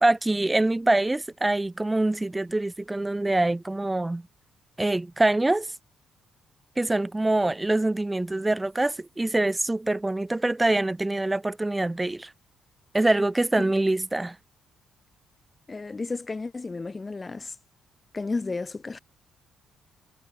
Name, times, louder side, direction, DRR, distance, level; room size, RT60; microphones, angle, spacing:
voice 1, 0.0-4.2 4.8-5.7 6.8-12.3 12.9-14.4, right 2 dB, 15° right, 1.1 m, -24 dB
voice 2, 15.7-17.5 18.1-19.0, left 3 dB, 25° left, 3.6 m, -32 dB
cardioid pair, 90°, 0 cm